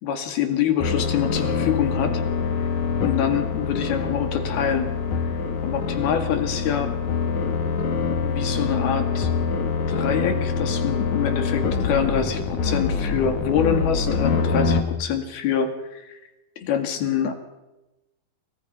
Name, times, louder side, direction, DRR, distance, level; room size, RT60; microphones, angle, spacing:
voice 1, 0.0-2.2 3.0-4.9 5.2-5.3 5.6-7.0 8.2-9.3 9.9-16.2 16.6-17.3, left 8 dB, 80° left, 6 dB, 4.2 m, -25 dB
sound 1, 0.8-14.8, left 5 dB, 55° left, 3.2 m, -25 dB
28.5 x 25.0 x 5.7 m, 1.0 s
omnidirectional pair, 4.4 m